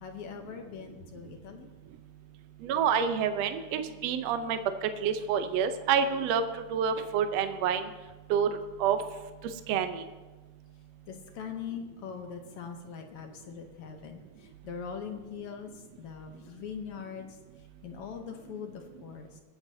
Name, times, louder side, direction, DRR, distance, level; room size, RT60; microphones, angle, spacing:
voice 1, 0.0-1.7 11.1-17.3 17.8-19.4, left 6 dB, 65° left, 4 dB, 1.5 m, -42 dB
voice 2, 2.6-6.4 6.7-7.9 8.3-8.5 8.8-9.0 9.7-10.0, right 7 dB, 75° right, 9 dB, 1.8 m, -28 dB
25.0 x 8.9 x 2.7 m, 1.3 s
omnidirectional pair, 3.3 m